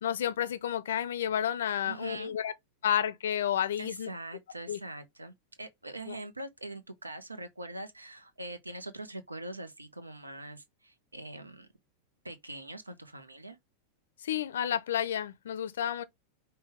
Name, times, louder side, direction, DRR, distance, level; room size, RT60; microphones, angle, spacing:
voice 1, 0.0-2.5 2.8-4.1 4.7-4.8 6.1-6.2 14.2-16.0, left 10 dB, 60° left, 0.5 m, -31 dB
voice 2, 1.8-2.3 3.8-11.7 12.2-13.6, right 2 dB, 80° right, 0.7 m, -43 dB
5.3 x 2.2 x 3.4 m
figure-of-eight pair, 90°, 0 cm